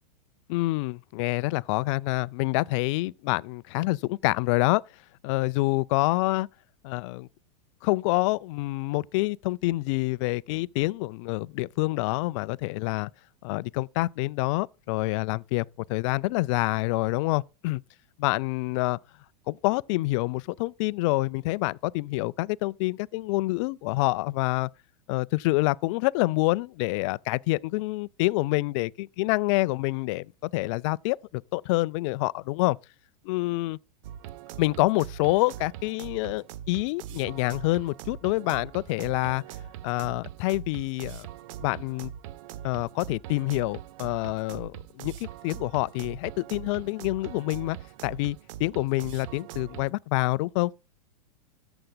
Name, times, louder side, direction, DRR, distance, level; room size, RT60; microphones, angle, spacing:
voice 1, 0.5-4.8 5.2-6.5 6.8-7.3 7.8-13.1 13.4-17.8 18.2-19.0 19.5-24.7 25.1-32.8 33.2-33.8 34.6-39.4 39.8-41.3 41.6-42.1 42.6-47.8 48.0-50.7, left 21 dB, 50° left, 0.4 m, -27 dB
sound 1, 34.0-49.9, right 11 dB, 55° right, 0.5 m, -42 dB
14.0 x 7.0 x 2.3 m
hypercardioid pair, 105°, 21 cm